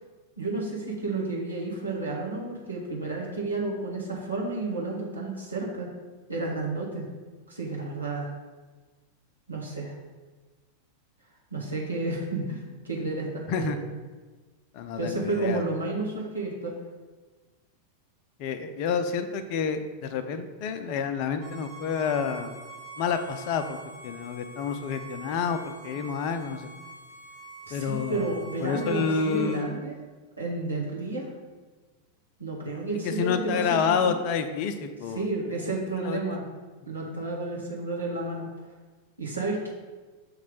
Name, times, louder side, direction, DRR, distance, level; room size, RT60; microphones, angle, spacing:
voice 1, 0.4-5.9 6.3-7.1 7.5-8.3 9.5-9.9 11.5-12.6 12.8-13.7 15.0-16.7 27.7-30.0 30.4-31.3 32.4-34.2 35.1-36.4 36.9-38.5 39.2-39.7, right 2 dB, 80° right, -3 dB, 1.4 m, -31 dB
voice 2, 14.7-15.6 18.4-22.6 23.0-23.8 24.0-26.7 27.7-28.3 28.6-29.8 33.0-35.3 35.6-35.7 36.0-36.4, left 6 dB, 45° left, 9 dB, 0.5 m, -29 dB
Bowed string instrument, 21.4-29.6, right 3 dB, 60° right, 1.9 m, -45 dB
6.6 x 3.1 x 5.4 m, 1.3 s
figure-of-eight pair, 90°, 0 cm